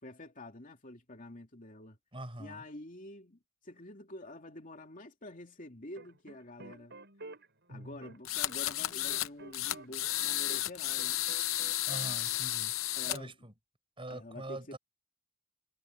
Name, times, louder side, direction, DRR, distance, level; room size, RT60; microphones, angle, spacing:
voice 1, 0.0-2.0 2.4-7.0 7.7-11.2 13.0-13.3 14.1-14.8, left 1 dB, 40° left, 2.8 m, -48 dB
voice 2, 2.1-2.6 11.9-12.7 13.0-13.5 14.0-14.8, right 1 dB, 25° right, 4.9 m, -43 dB
sound 1, 6.0-10.7 11.0-12.2, right 2 dB, 55° right, 7.6 m, -50 dB
sound 2, 8.2-9.3 9.5-13.2, left 14 dB, 65° left, 0.8 m, -33 dB
head